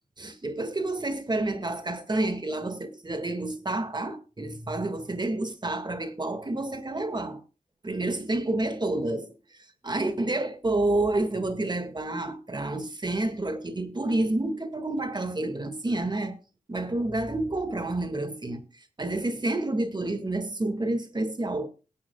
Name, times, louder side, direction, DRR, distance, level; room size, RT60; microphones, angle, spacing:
voice 1, 0.2-7.4 7.8-16.4 16.7-18.6 19.0-21.7, right 2 dB, 30° right, 1.9 m, -29 dB
22.0 x 8.7 x 2.3 m
cardioid pair, 60°, 14 cm